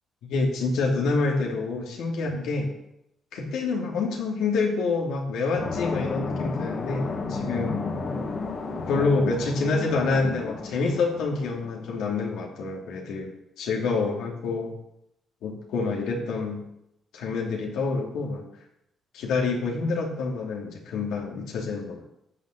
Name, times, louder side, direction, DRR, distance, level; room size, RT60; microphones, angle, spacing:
voice 1, 0.2-2.7 3.3-7.9 8.9-13.3 13.6-14.7 15.4-16.6 17.1-18.4 19.1-22.0, left 3 dB, 85° left, 0 dB, 2.9 m, -27 dB
sound 1, 5.6-12.0, left 3 dB, 50° left, 2.3 m, -32 dB
13.0 x 6.6 x 8.1 m, 0.81 s
cardioid pair, 90°, 0 cm